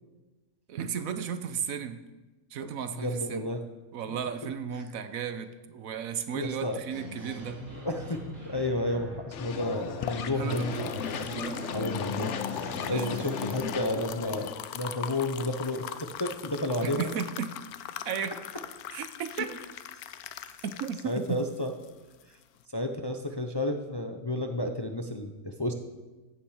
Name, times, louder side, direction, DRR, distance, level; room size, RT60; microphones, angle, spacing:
voice 1, 0.7-2.0 2.5-3.5 3.9-7.7 10.3-11.0 11.4-11.6 12.9-13.1 17.0-17.5 18.0-18.4 18.9-19.5 20.6-21.4, right 7 dB, 70° right, 11 dB, 1.2 m, -34 dB
voice 2, 2.9-3.6 6.3-6.8 7.8-10.6 11.7-17.1 19.4-19.5 21.0-21.7 22.7-25.7, left 1 dB, 25° left, 5 dB, 0.6 m, -31 dB
sound 1, 6.9-13.6, left 2 dB, 55° right, 4.0 m, -40 dB
sound 2, 9.3-14.5, left 7 dB, 60° left, 1.0 m, -37 dB
sound 3, 9.6-22.6, left 10 dB, 90° left, 1.1 m, -41 dB
15.0 x 8.8 x 4.9 m, 1.2 s
omnidirectional pair, 1.5 m